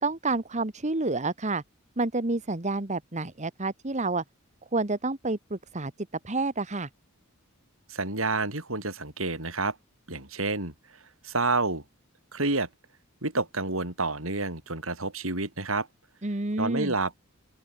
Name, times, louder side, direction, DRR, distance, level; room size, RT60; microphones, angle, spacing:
voice 1, 0.0-1.6 2.0-4.2 4.7-5.9 6.2-6.9 16.2-16.9, right 3 dB, 35° right, 1.5 m, -29 dB
voice 2, 7.9-9.7 10.1-10.7 11.2-11.8 12.3-12.7 13.2-15.9 16.6-17.1, right 3 dB, 70° right, 6.7 m, -29 dB
open air
head